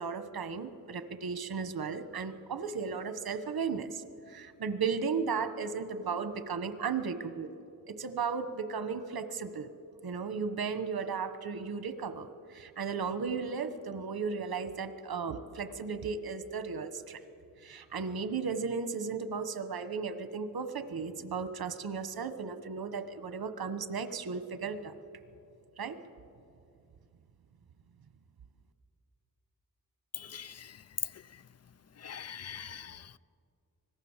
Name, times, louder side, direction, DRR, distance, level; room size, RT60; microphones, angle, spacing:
voice 1, 0.0-7.5 7.9-9.7 10.0-17.2 17.6-24.9 25.8-26.0, right 5 dB, 80° right, 1.4 m, -35 dB
voice 2, 30.3-30.7 32.0-33.2, left 7 dB, 45° left, 0.6 m, -44 dB
25.0 x 18.5 x 7.4 m
wide cardioid pair, 105°, 36 cm